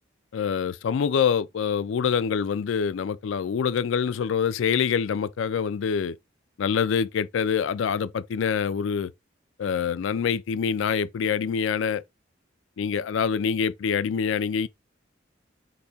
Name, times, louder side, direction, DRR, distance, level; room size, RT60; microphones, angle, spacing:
voice 1, 0.3-6.2 6.6-9.1 9.6-12.0 12.8-14.7, left 7 dB, 80° left, 0.4 m, -25 dB
4.1 x 2.8 x 3.4 m
head